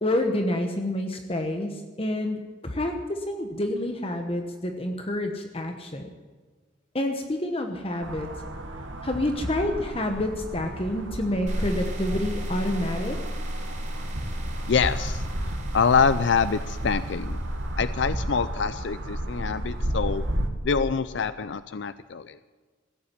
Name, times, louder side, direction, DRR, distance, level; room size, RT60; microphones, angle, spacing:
voice 1, 0.0-6.1 6.9-8.3 9.0-13.2, left 1 dB, 30° left, 4 dB, 1.1 m, -28 dB
sound 1, 8.0-20.5, right 1 dB, 80° right, 1.8 m, -33 dB
sound 2, 11.5-18.6, equal, 40° right, 3.2 m, -34 dB
voice 2, 14.7-15.2 15.7-17.4 17.8-20.2 20.6-22.5, left 5 dB, 65° left, 13 dB, 0.5 m, -25 dB
16.0 x 8.6 x 10.0 m, 1.4 s
head